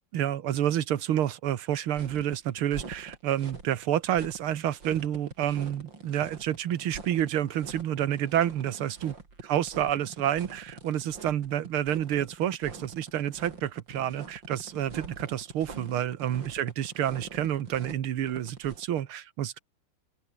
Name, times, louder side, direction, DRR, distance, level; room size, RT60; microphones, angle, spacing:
voice 1, 0.1-9.2 9.5-19.6, right 11 dB, 75° right, 2.1 m, -29 dB
sound 1, 1.9-19.0, right 4 dB, 55° right, 4.6 m, -45 dB
open air
omnidirectional pair, 2.4 m